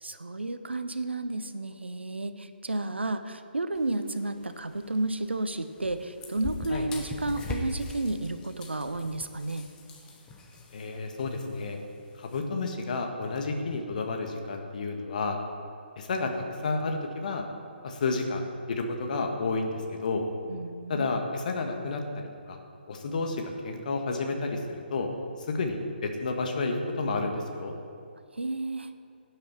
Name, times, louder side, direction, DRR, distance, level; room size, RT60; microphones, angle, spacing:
voice 1, 0.0-9.7 20.5-21.1 28.3-28.9, right 2 dB, 75° right, 10 dB, 0.9 m, -32 dB
sound 1, 3.7-12.4, left 2 dB, 10° left, 1.0 m, -42 dB
voice 2, 10.7-11.8 12.2-15.4 16.0-17.4 17.8-20.2 20.9-22.0 22.5-22.6 22.9-25.1 25.5-27.7, left 3 dB, 45° left, 3 dB, 1.6 m, -31 dB
16.5 x 8.8 x 4.6 m, 2.5 s
figure-of-eight pair, 140°, 6 cm